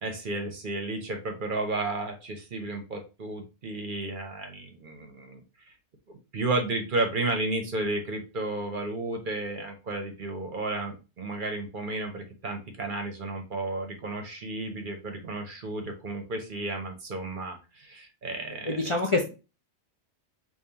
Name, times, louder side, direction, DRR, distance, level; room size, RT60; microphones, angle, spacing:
voice 1, 0.0-5.4 5.7-5.8 6.1-18.8, right 2 dB, 50° right, 4 dB, 0.8 m, -33 dB
voice 2, 18.6-19.3, left 2 dB, 40° left, 0 dB, 0.5 m, -26 dB
5.2 x 2.5 x 2.8 m, 0.30 s
omnidirectional pair, 1.2 m